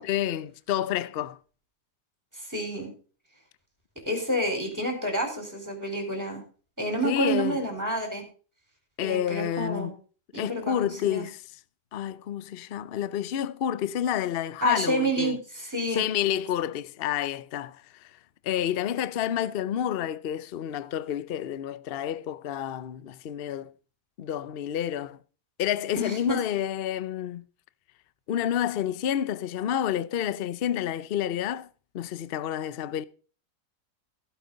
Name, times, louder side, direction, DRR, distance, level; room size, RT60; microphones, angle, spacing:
voice 1, 0.0-1.4 7.0-7.6 9.0-9.9 10.3-11.4 11.9-15.4 15.9-18.1 18.4-23.7 24.2-25.2 25.6-27.4 28.3-31.7 31.9-33.0, left 10 dB, 85° left, 0.5 m, -29 dB
voice 2, 2.3-2.9 4.1-6.4 6.8-8.3 9.0-9.9 10.3-11.3 14.6-16.0 26.0-26.4, right 1 dB, 10° right, 4.6 m, -29 dB
15.5 x 9.1 x 4.0 m
omnidirectional pair, 1.9 m